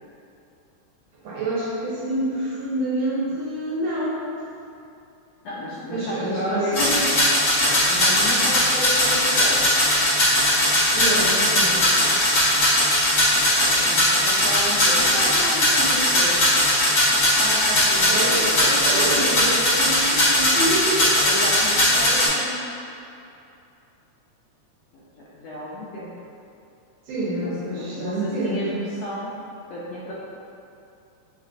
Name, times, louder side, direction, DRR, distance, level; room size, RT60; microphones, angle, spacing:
voice 1, 1.2-4.2 5.9-7.1 10.9-11.9 18.1-21.2 27.1-28.6, right 1 dB, 75° right, -7 dB, 1.9 m, -27 dB
voice 2, 5.4-6.7 7.4-9.6 13.3-13.4 13.6-16.4 17.4-19.1 21.2-22.6 24.9-25.0 25.3-26.1 27.2-29.3 29.7-30.1, equal, 80° left, -7 dB, 1.6 m, -32 dB
sound 1, 6.7-22.3, left 1 dB, 55° left, 2.2 m, -19 dB
6.8 x 2.4 x 2.4 m, 2.7 s
omnidirectional pair, 3.4 m